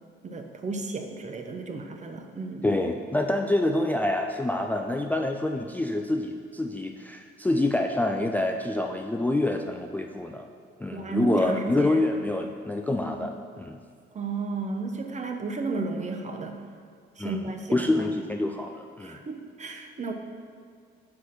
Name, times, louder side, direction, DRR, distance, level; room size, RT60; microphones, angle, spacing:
voice 1, 0.2-2.8 10.9-12.0 13.0-13.3 14.1-16.6 17.2-18.1 19.0-20.1, right 3 dB, 35° right, 5 dB, 0.8 m, -33 dB
voice 2, 2.6-10.5 10.8-13.8 17.2-17.4 17.7-19.2, left 1 dB, 10° left, 3 dB, 0.3 m, -27 dB
6.3 x 4.8 x 5.9 m, 2.2 s
cardioid pair, 90°, 20 cm